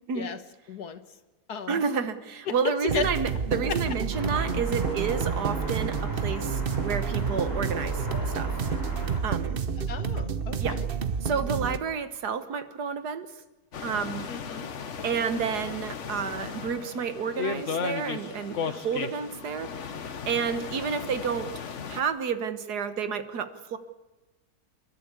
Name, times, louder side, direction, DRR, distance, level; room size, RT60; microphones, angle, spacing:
voice 1, 0.7-1.2 1.5-1.8 2.5-3.1 3.5-3.8 9.9-10.9 14.3-14.7, left 6 dB, 80° left, 9 dB, 1.9 m, -34 dB
voice 2, 1.7-8.6 9.2-9.6 10.6-10.8 11.2-13.3 13.8-14.3 15.0-19.7 20.3-21.5 21.9-23.8, right 6 dB, 90° right, 11 dB, 1.8 m, -30 dB
sound 1, 2.9-11.8, right 6 dB, 45° right, 0.9 m, -29 dB
sound 2, 4.1-9.2, equal, 10° left, 3.5 m, -36 dB
sound 3, 13.7-22.0, left 6 dB, 50° left, 1.4 m, -35 dB
29.0 x 12.0 x 8.3 m, 1.1 s
omnidirectional pair, 1.6 m